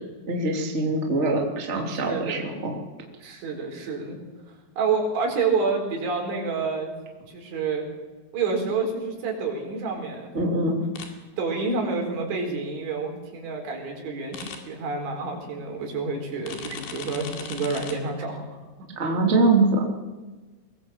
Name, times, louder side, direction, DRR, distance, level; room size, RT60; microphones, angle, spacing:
voice 1, 0.3-2.7 10.3-10.8 19.0-19.8, right 2 dB, 20° right, 1 dB, 2.6 m, -23 dB
voice 2, 1.9-2.5 3.2-4.2 4.8-6.9 7.3-7.9 8.3-10.3 10.7-10.8 11.4-18.5, right 4 dB, 85° right, 1 dB, 6.9 m, -28 dB
sound 1, 11.0-11.1 14.3-14.6 16.5-17.9, left 7 dB, 80° left, 4.6 m, -37 dB
23.0 x 20.5 x 7.6 m, 1.3 s
omnidirectional pair, 5.2 m